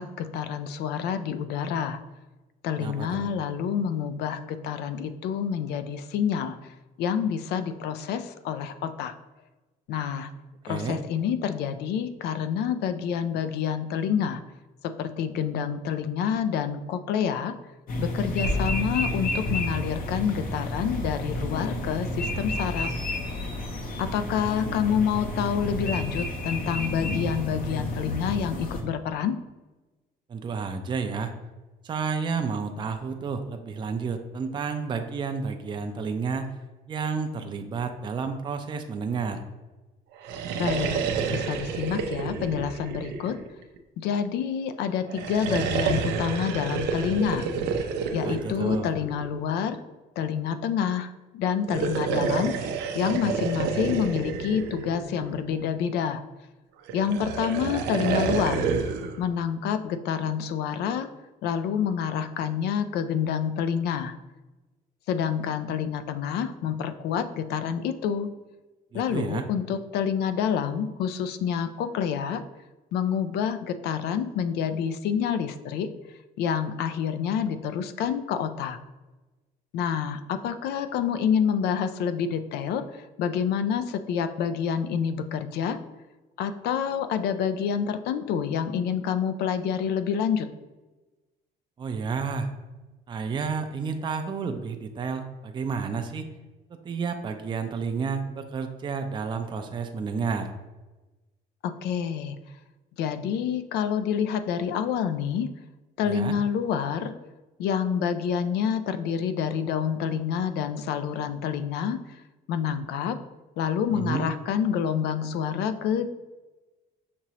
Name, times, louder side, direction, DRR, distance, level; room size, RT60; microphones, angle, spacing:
voice 1, 0.0-2.0 2.6-9.1 9.9-10.3 10.6-14.4 14.8-17.5 18.0-22.9 24.0-29.4 40.5-41.0 41.3-43.4 44.0-47.5 48.1-49.8 50.2-52.6 52.9-56.2 56.9-58.7 59.2-61.1 61.4-64.1 65.1-68.3 68.9-72.4 72.9-75.9 76.4-78.8 79.7-85.8 86.4-90.5 101.6-102.4 103.0-105.5 106.0-107.1 107.6-112.2 112.5-113.2 113.6-116.1, left 8 dB, 75° left, 10 dB, 0.4 m, -28 dB
voice 2, 2.8-3.3 10.7-11.0 30.3-31.3 31.8-36.5 36.9-39.4 48.2-48.9 68.9-69.4 91.8-92.5 93.1-96.3 96.8-100.5 106.0-106.3 113.9-114.3, right 5 dB, 30° right, 6 dB, 0.4 m, -31 dB
sound 1, 17.9-28.8, left 1 dB, 55° left, 0.8 m, -30 dB
sound 2, 40.2-43.8 45.1-49.4 51.6-55.6 56.9-59.2, right 5 dB, 85° right, 0.5 m, -29 dB
6.0 x 2.9 x 2.8 m, 1.1 s
cardioid pair, 110°, 17 cm